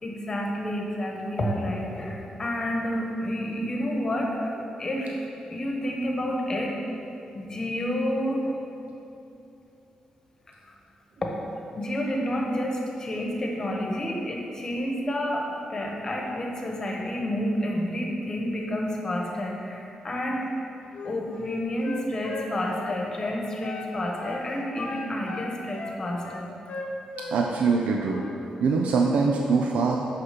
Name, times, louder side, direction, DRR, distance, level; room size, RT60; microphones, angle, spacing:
voice 1, 0.0-4.5 4.8-6.7 7.3-8.5 10.5-10.8 11.2-11.3 11.8-20.4 21.0-26.5, left 1 dB, 30° left, 0 dB, 1.1 m, -29 dB
Wind instrument woodwind instrument, 20.9-23.9 24.2-24.4 24.8-27.3 27.6-28.3, left 3 dB, 65° left, 0.8 m, -37 dB
voice 2, 27.3-28.2 28.6-30.0, right 4 dB, 80° right, 0 dB, 0.5 m, -23 dB
6.4 x 5.9 x 5.8 m, 2.8 s
wide cardioid pair, 145°, 2 cm